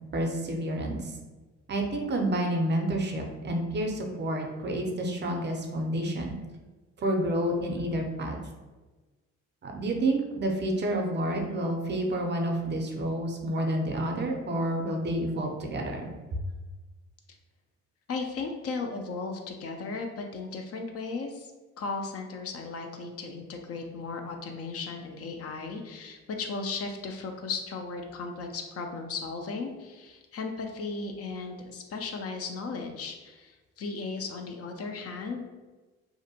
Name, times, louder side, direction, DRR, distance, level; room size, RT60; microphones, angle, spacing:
voice 1, 0.1-1.1 1.7-6.3 7.0-8.4 9.6-16.4, right 1 dB, 35° right, 1 dB, 0.5 m, -29 dB
voice 2, 18.1-21.5 21.8-35.4, left 4 dB, 50° left, 3 dB, 0.4 m, -36 dB
2.6 x 2.1 x 2.7 m, 1.2 s
cardioid pair, 90°, 30 cm